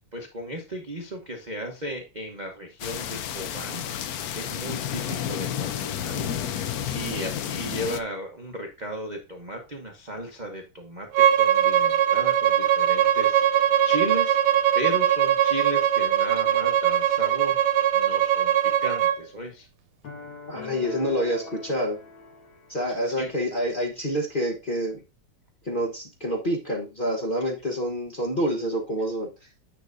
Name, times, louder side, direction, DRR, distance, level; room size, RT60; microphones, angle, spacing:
voice 1, 0.0-17.6 17.9-19.7 23.0-23.3, right 1 dB, 35° right, 2 dB, 0.6 m, -35 dB
sound 1, 2.8-8.0, left 9 dB, 85° left, 0.8 m, -31 dB
Bowed string instrument, 11.1-19.2, right 10 dB, 80° right, 1.6 m, -21 dB
sound 2, 20.0-23.3, left 5 dB, 65° left, 2.5 m, -42 dB
voice 2, 20.5-22.0 22.7-25.0 25.6-29.3, equal, 30° left, -3 dB, 0.9 m, -27 dB
10.0 x 7.6 x 2.6 m, 0.29 s
omnidirectional pair, 2.4 m